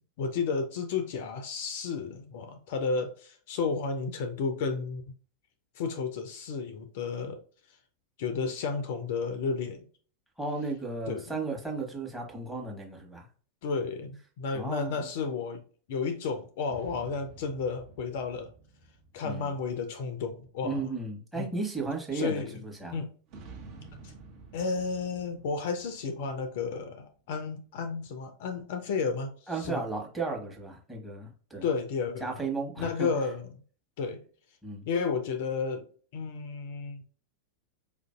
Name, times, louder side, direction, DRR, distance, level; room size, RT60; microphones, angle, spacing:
voice 1, 0.2-5.0 5.8-7.4 8.2-9.8 11.1-11.2 13.6-15.6 15.9-18.5 19.1-20.8 21.3-21.5 22.1-22.5 22.9-23.1 24.5-29.3 29.6-29.8 31.6-32.3 32.8-33.5 34.0-34.2 34.9-35.9 36.1-37.1, left 5 dB, 50° left, 0.5 m, -32 dB
voice 2, 10.4-13.3 14.5-15.1 19.2-19.5 20.6-23.0 29.5-31.6 32.2-33.1 34.6-34.9, right 3 dB, 5° right, 1.1 m, -35 dB
sound 1, 16.7-20.4 23.3-27.1, right 4 dB, 40° right, 0.8 m, -51 dB
4.9 x 2.6 x 2.3 m
figure-of-eight pair, 90°, 0 cm